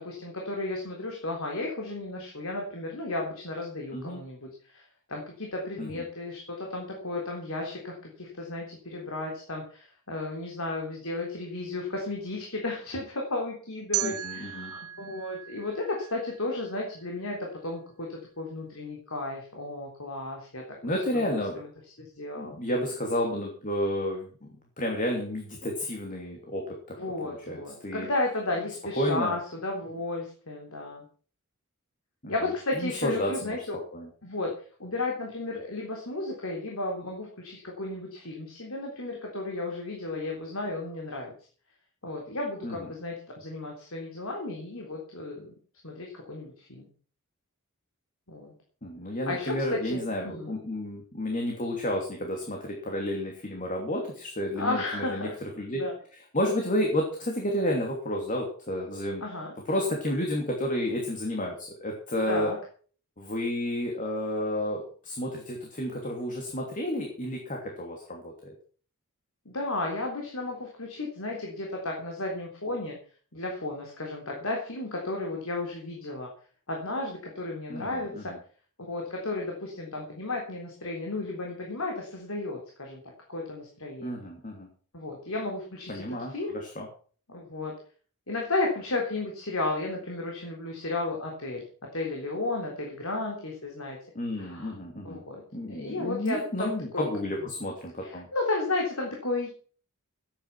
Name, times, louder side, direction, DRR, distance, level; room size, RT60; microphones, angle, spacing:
voice 1, 0.0-4.8 5.1-20.6 21.1-21.7 22.0-22.6 27.0-31.0 32.3-33.8 34.2-34.5 34.8-41.3 42.0-45.5 45.8-46.9 48.3-48.5 49.3-50.5 54.6-55.3 55.7-55.9 59.2-59.5 62.3-62.6 69.5-73.0 73.3-76.3 76.7-78.3 78.9-83.0 83.3-84.3 84.9-86.6 87.3-87.7 88.3-91.6 91.9-94.0 94.4-94.7 95.0-95.4 95.7-97.0 98.0-99.5, left 2 dB, 70° left, 0 dB, 3.8 m, -33 dB
sound 1, 13.9-16.9, right 13 dB, 80° right, 1.3 m, -36 dB
voice 2, 14.0-14.7 20.8-21.6 22.4-26.8 27.2-28.1 29.0-29.4 32.2-32.3 32.7-33.6 33.9-34.1 42.6-42.9 48.8-55.3 55.6-55.8 56.3-59.2 59.7-62.5 63.2-68.5 77.7-78.4 84.0-84.7 85.9-86.9 94.1-95.2 95.5-98.2, left 1 dB, 35° left, 1 dB, 2.9 m, -31 dB
13.5 x 9.9 x 6.1 m, 0.43 s
head